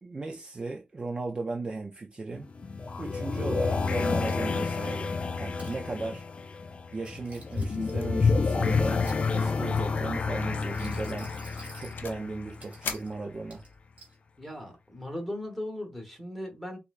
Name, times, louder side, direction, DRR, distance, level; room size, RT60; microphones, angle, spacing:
voice 1, 0.0-2.5 3.0-6.2 6.9-9.0 9.3-11.3 11.8-13.6, right 3 dB, 30° right, 0.4 m, -36 dB
sound 1, 2.3-13.1, left 4 dB, 35° left, 0.4 m, -29 dB
Coin (dropping), 4.3-4.8 5.3-5.8 6.9-8.1 8.7-9.6 10.6-12.0 12.6-13.1 13.5-14.2, right 3 dB, 45° right, 1.8 m, -52 dB
sound 2, 8.0-8.3 8.6-8.9 9.1-9.2 9.7-10.0 10.4-10.7 11.2-12.3 12.8-13.8, left 6 dB, 80° left, 0.6 m, -41 dB
voice 2, 14.4-16.8, left 1 dB, ahead, 1.1 m, -37 dB
6.6 x 2.2 x 2.5 m
wide cardioid pair, 175°, 3 cm